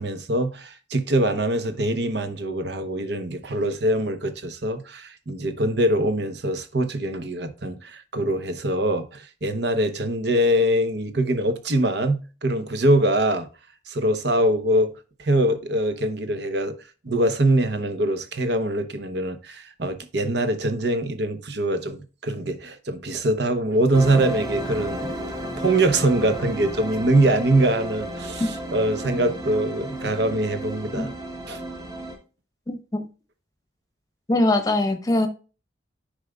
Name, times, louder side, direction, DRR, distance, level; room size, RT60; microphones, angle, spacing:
voice 1, 0.0-13.5 13.9-16.8 17.0-25.1 25.6-31.1 31.5-31.6, right 1 dB, 60° right, 0.9 m, -23 dB
sound 1, 23.9-32.2, right 1 dB, 20° right, 1.0 m, -33 dB
voice 2, 32.7-33.0 34.3-35.3, left 2 dB, 20° left, 0.9 m, -22 dB
10.0 x 4.9 x 2.3 m
head